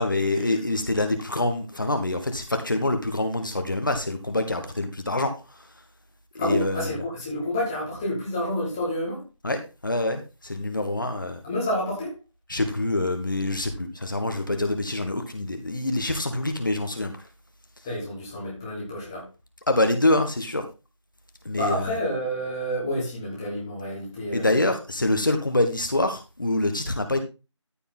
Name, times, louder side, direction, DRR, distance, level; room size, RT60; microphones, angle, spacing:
voice 1, 0.0-5.3 6.3-6.9 9.4-11.4 12.5-17.1 19.7-20.6 21.4-21.9 24.3-27.2, left 2 dB, 40° left, 6 dB, 1.5 m, -25 dB
voice 2, 6.4-9.2 11.0-12.1 17.8-19.2 21.5-24.7, equal, 5° left, -6 dB, 1.6 m, -29 dB
14.0 x 5.4 x 3.8 m, 0.29 s
figure-of-eight pair, 170°, 16 cm